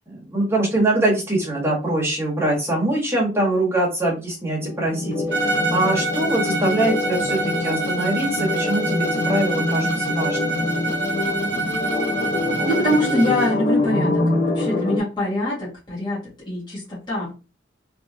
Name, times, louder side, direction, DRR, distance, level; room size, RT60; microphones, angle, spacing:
voice 1, 0.1-10.7, right 1 dB, 15° right, -3 dB, 1.4 m, -23 dB
sound 1, 4.6-15.0, left 2 dB, 40° left, 0.9 m, -25 dB
Bowed string instrument, 5.3-13.6, right 2 dB, 65° right, 0.9 m, -26 dB
voice 2, 12.7-16.2 16.5-17.3, left 1 dB, 25° left, -8 dB, 1.7 m, -23 dB
3.4 x 3.1 x 2.7 m, 0.30 s
head